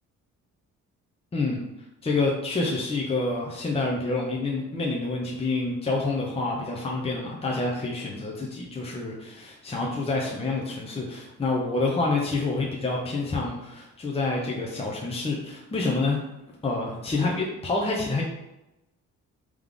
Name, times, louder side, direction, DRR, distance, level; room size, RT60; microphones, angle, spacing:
voice 1, 2.0-16.2 16.6-18.2, left 3 dB, 20° left, -2 dB, 0.8 m, -27 dB
3.7 x 3.2 x 3.6 m, 0.92 s
cardioid pair, 90°, 30 cm